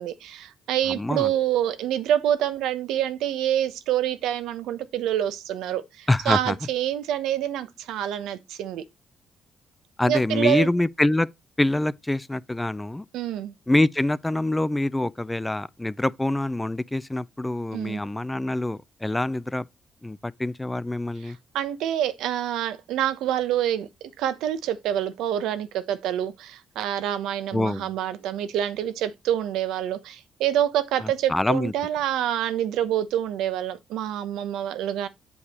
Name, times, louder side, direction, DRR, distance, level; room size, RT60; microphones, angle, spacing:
voice 1, 0.0-8.8 10.1-10.7 13.1-13.5 17.7-18.0 21.2-35.1, right 11 dB, 90° right, 0.9 m, -27 dB
voice 2, 0.9-1.3 6.1-6.6 10.0-11.3 11.6-13.0 13.7-19.7 20.0-21.4 27.5-27.9 31.0-31.7, left 1 dB, 10° left, 0.4 m, -25 dB
8.3 x 4.7 x 4.3 m
cardioid pair, 90°, 0 cm